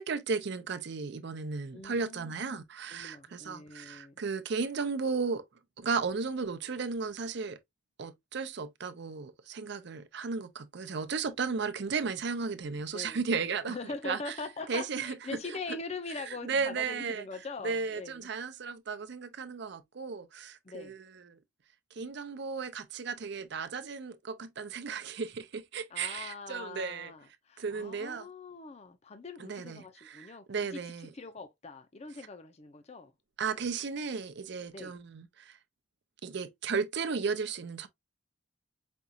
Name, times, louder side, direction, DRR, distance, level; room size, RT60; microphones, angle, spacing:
voice 1, 0.0-5.4 5.8-7.6 8.0-13.8 14.0-14.4 14.7-15.2 15.5-15.6 16.2-17.2 17.6-21.4 21.9-27.1 27.6-28.3 29.4-31.1 33.4-35.6 36.2-37.9, right 5 dB, 60° right, 0.5 m, -35 dB
voice 2, 1.7-2.6 2.9-4.1 12.9-13.2 13.6-18.3 20.6-20.9 25.9-33.1 34.7-34.9, left 3 dB, 35° left, 0.5 m, -42 dB
5.2 x 2.4 x 2.7 m
head